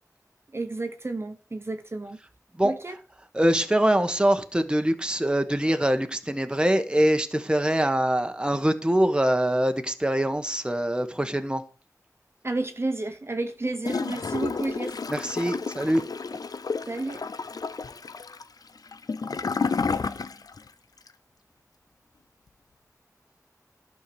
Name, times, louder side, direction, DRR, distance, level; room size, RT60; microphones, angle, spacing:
voice 1, 0.5-2.2 2.6-3.0 12.4-15.0 16.9-17.3, right 2 dB, 40° right, 1.0 m, -31 dB
voice 2, 3.3-11.6 15.1-16.0, right 1 dB, 15° right, 1.1 m, -23 dB
Gurgling / Toilet flush, 13.8-20.7 21.0-21.1, left 4 dB, 85° left, 0.5 m, -31 dB
12.0 x 4.6 x 6.9 m
wide cardioid pair, 60°, 6 cm